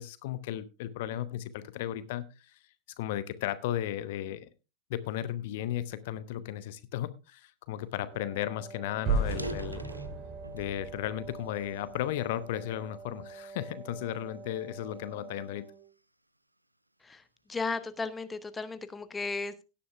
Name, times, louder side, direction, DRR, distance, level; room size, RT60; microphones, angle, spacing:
voice 1, 0.0-2.5 3.0-4.5 4.9-9.9 10.5-15.7, left 12 dB, 50° left, 14 dB, 0.9 m, -35 dB
Wind instrument woodwind instrument, 7.9-15.9, right 4 dB, 15° right, 2.8 m, -47 dB
sound 1, 8.1-8.2 8.5-8.7 9.2-10.8 11.3-12.6 13.2-13.4 14.1-16.1, right 1 dB, 85° right, 0.7 m, -46 dB
sound 2, 9.0-12.0, right 3 dB, 30° right, 3.3 m, -33 dB
voice 2, 17.5-19.6, left 4 dB, 10° left, 12 dB, 0.8 m, -35 dB
17.0 x 10.0 x 2.3 m, 0.28 s
figure-of-eight pair, 90°, 0 cm